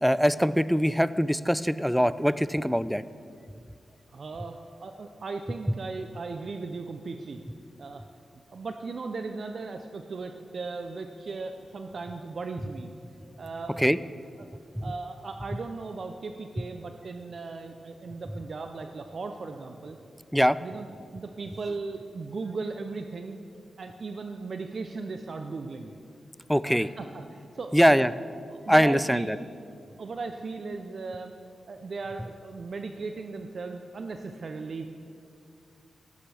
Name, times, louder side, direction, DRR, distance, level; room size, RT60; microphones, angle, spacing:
voice 1, 0.0-3.0 13.8-14.0 14.8-14.9 20.3-20.6 26.5-26.9 27.7-28.1 28.7-29.4, equal, ahead, 16 dB, 0.4 m, -22 dB
voice 2, 4.1-7.4 7.8-8.0 8.3-12.9 13.4-13.8 14.3-14.5 14.8-20.0 20.6-20.9 21.1-23.4 23.8-26.0 26.6-28.1 28.5-29.3 30.0-31.3 31.7-34.9, right 4 dB, 60° right, 6 dB, 0.6 m, -37 dB
14.5 x 12.0 x 3.4 m, 2.4 s
cardioid pair, 50°, 0 cm